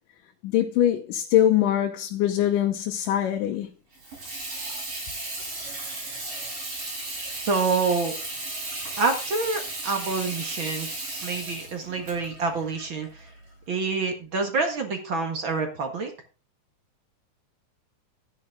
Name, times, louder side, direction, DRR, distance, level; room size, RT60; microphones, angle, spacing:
voice 1, 0.4-3.7 4.3-4.4, left 11 dB, 80° left, 2.5 m, -23 dB
Water tap faucet / Sink (filling or washing), 3.9-13.5, right 2 dB, 90° right, 9.2 m, -35 dB
voice 2, 7.4-8.1 9.0-13.3 13.7-16.1, right 4 dB, 45° right, 2.2 m, -27 dB
13.0 x 9.9 x 3.7 m
omnidirectional pair, 3.7 m